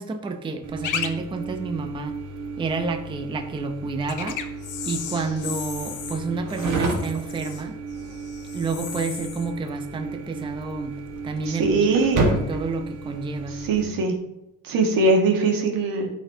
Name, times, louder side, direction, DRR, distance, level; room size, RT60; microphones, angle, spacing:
voice 1, 0.0-2.2 2.6-4.4 4.9-7.8 8.5-11.9 12.1-13.6, right 4 dB, 15° right, 5 dB, 0.5 m, -30 dB
sound 1, 0.6-13.8, right 3 dB, 65° right, 1.6 m, -32 dB
sound 2, 0.8-1.1 1.4-1.5 4.0-10.9 11.1-11.6 12.3-12.5, left 8 dB, 65° left, 0.8 m, -35 dB
voice 2, 11.5-12.3 13.5-14.1 14.6-16.1, right 3 dB, 80° right, 2 dB, 1.5 m, -21 dB
12.5 x 4.2 x 2.7 m, 0.89 s
cardioid pair, 150°, 33 cm